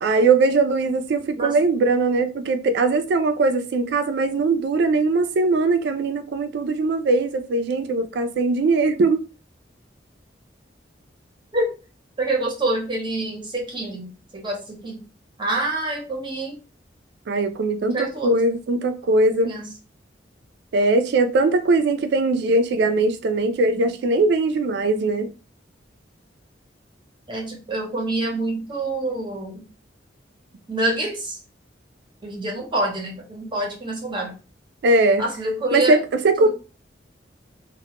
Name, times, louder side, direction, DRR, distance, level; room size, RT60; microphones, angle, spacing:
voice 1, 0.0-9.2 17.3-19.5 20.7-25.3 34.8-35.2 35.7-36.5, right 3 dB, 65° right, 0.3 m, -20 dB
voice 2, 12.2-15.0 15.4-16.6 17.8-18.3 19.4-19.7 27.3-29.6 30.7-31.4 32.2-34.3 35.2-36.0 36.4-36.5, right 2 dB, 25° right, 0.6 m, -26 dB
2.1 x 2.1 x 2.8 m
head